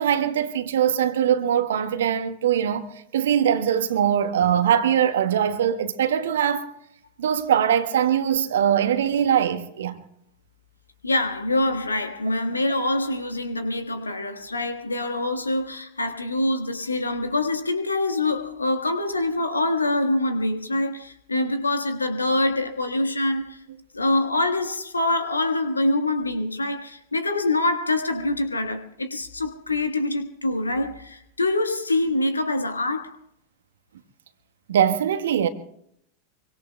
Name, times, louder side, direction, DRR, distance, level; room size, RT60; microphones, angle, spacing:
voice 1, 0.0-6.7 7.2-10.0 34.7-35.5, right 9 dB, 60° right, 1.2 m, -22 dB
voice 2, 11.0-23.6 23.9-33.2, left 2 dB, 80° left, 1.4 m, -25 dB
25.5 x 24.0 x 2.2 m
figure-of-eight pair, 90°, 0 cm